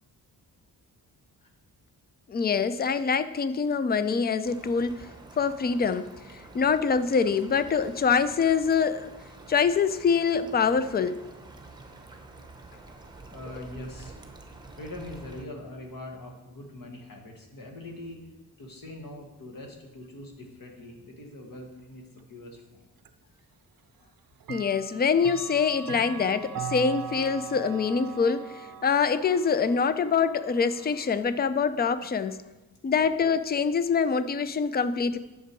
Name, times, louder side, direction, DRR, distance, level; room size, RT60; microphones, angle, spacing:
voice 1, 2.3-5.1 5.4-6.1 6.5-9.1 9.5-11.1 24.5-28.5 28.8-32.4 32.8-35.2, left 6 dB, 25° left, 13 dB, 0.3 m, -25 dB
sound 1, 4.4-15.4, right 3 dB, 10° right, 0.8 m, -48 dB
voice 2, 13.3-14.2 14.8-18.3 18.6-22.9, left 1 dB, 60° left, 2 dB, 1.8 m, -42 dB
Clock, 23.0-23.1 24.4-31.2, right 7 dB, 65° right, 0.5 m, -40 dB
10.5 x 6.8 x 4.5 m, 1.1 s
wide cardioid pair, 170°, 38 cm